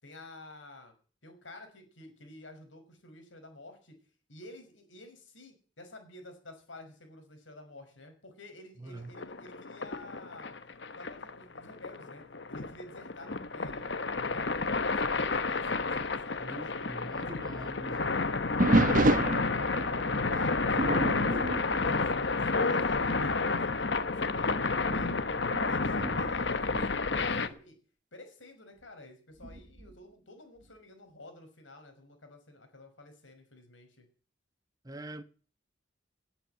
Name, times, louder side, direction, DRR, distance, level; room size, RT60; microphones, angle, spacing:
voice 1, 0.0-0.9 1.2-4.0 4.3-10.5 11.0-18.3 20.3-25.3 25.7-27.8 28.1-34.1, left 2 dB, 80° left, 5.7 m, -51 dB
voice 2, 8.8-9.1 16.4-18.1 19.0-19.5 20.2-20.4 34.8-35.2, right 1 dB, 20° right, 0.8 m, -44 dB
sound 1, 9.1-27.5, left 3 dB, 60° left, 1.2 m, -30 dB
sound 2, 18.6-22.7 23.1-23.4 24.0-24.1 24.9-27.6 29.4-29.9, right 2 dB, 45° right, 1.2 m, -30 dB
19.0 x 9.2 x 8.1 m
head